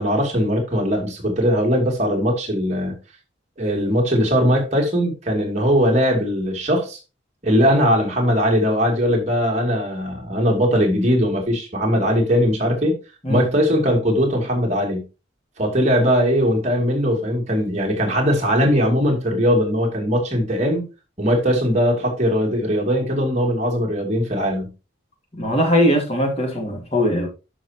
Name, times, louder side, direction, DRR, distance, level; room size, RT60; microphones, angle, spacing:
voice 1, 0.0-3.0 3.6-7.0 7.4-12.9 13.3-15.0 15.6-20.8 21.2-24.7, equal, 35° right, 2.6 m, -20 dB
voice 2, 25.4-27.3, equal, 30° left, 2.3 m, -20 dB
12.0 x 6.1 x 2.9 m
head